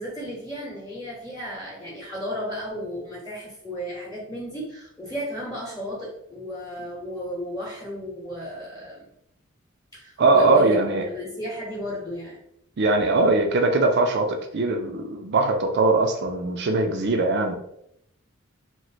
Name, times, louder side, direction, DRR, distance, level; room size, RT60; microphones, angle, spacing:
voice 1, 0.0-9.1 9.9-12.4, equal, 15° left, -4 dB, 0.9 m, -34 dB
voice 2, 10.2-11.0 12.8-17.6, right 3 dB, 55° right, 5 dB, 0.4 m, -21 dB
3.0 x 2.1 x 4.0 m, 0.75 s
head